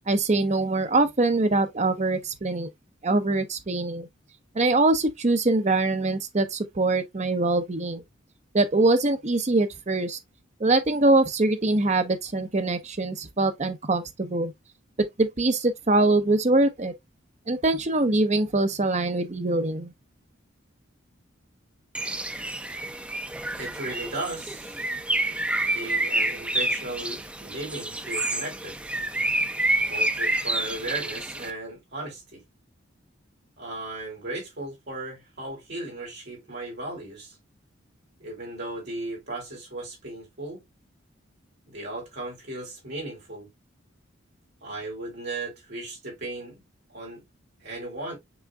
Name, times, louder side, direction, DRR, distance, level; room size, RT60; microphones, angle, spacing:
voice 1, 0.1-2.7 3.0-4.1 4.5-8.0 8.5-10.2 10.6-14.5 15.2-16.9 17.5-19.9, right 2 dB, 35° right, 0.7 m, -23 dB
Bird, 21.9-31.5, right 1 dB, 5° right, 0.4 m, -28 dB
voice 2, 23.5-24.8 25.7-28.8 29.9-32.4 33.6-37.3 38.2-40.6 41.7-43.5 44.6-46.6 46.9-47.2 47.6-48.2, right 2 dB, 55° right, 3.4 m, -36 dB
6.2 x 3.6 x 2.3 m
head